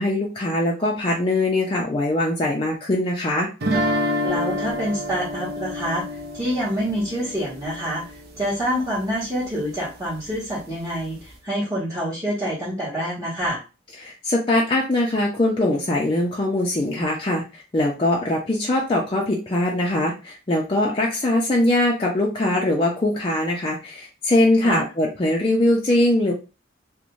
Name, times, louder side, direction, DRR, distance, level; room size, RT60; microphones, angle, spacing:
voice 1, 0.0-3.5 14.0-26.3, left 1 dB, 25° left, -3 dB, 0.4 m, -22 dB
sound 1, 3.6-8.5, equal, 50° right, 0.6 m, -28 dB
voice 2, 4.2-6.0 6.3-8.0 8.4-13.6 24.6-24.8, equal, 15° right, -10 dB, 1.1 m, -26 dB
2.5 x 2.1 x 3.0 m, 0.31 s
head